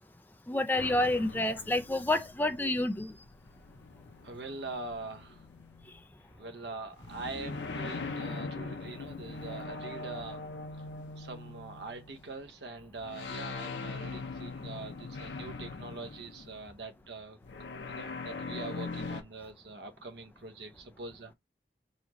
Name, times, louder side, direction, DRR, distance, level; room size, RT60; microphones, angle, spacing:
voice 1, 0.5-3.1, left 1 dB, 10° left, 0.4 m, -29 dB
sound 1, 0.8-6.4 7.0-12.5 13.0-16.8 17.4-19.2, left 3 dB, 90° left, 0.6 m, -41 dB
voice 2, 4.2-5.5 6.3-10.5 11.2-17.4 17.9-21.3, right 3 dB, 80° right, 0.8 m, -43 dB
4.0 x 3.0 x 3.0 m
head